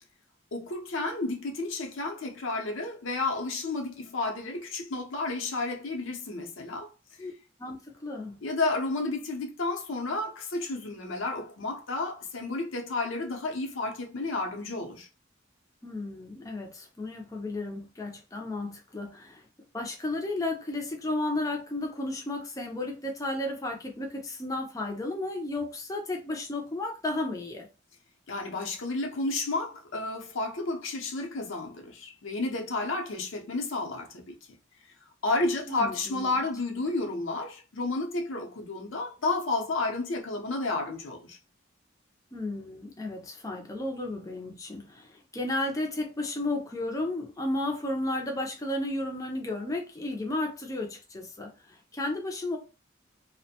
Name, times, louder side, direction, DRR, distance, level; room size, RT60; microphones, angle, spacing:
voice 1, 0.5-6.9 8.4-15.1 28.3-34.4 35.2-41.4, left 2 dB, 80° left, 0.7 m, -31 dB
voice 2, 7.6-8.4 15.8-19.5 19.7-27.7 35.7-36.3 42.3-52.6, left 2 dB, 15° left, 0.4 m, -33 dB
2.5 x 2.1 x 2.7 m
head